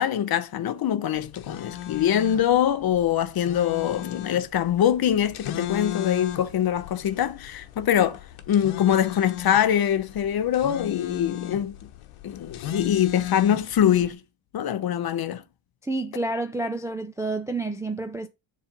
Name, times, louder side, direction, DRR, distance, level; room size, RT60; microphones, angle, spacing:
voice 1, 0.0-8.2 8.5-11.8 12.2-14.2 14.5-15.4, left 10 dB, 50° left, 0.8 m, -23 dB
sound 1, 1.2-14.1, left 12 dB, 85° left, 1.1 m, -36 dB
voice 2, 15.8-18.3, right 2 dB, 5° right, 0.4 m, -29 dB
7.2 x 3.3 x 5.2 m
cardioid pair, 125°, 49 cm